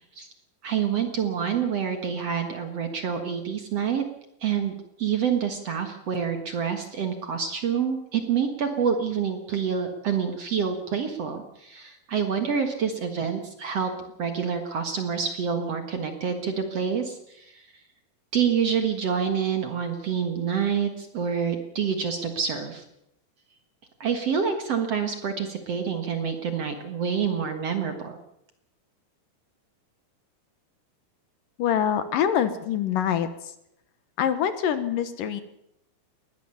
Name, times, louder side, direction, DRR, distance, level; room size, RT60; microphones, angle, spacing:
voice 1, 0.6-4.0 4.4-17.7 18.3-22.8 24.0-28.2, right 7 dB, 50° right, 7 dB, 2.1 m, -27 dB
voice 2, 31.6-33.3 34.2-35.4, left 9 dB, 70° left, 12 dB, 2.6 m, -24 dB
21.0 x 18.0 x 7.0 m, 0.79 s
omnidirectional pair, 4.5 m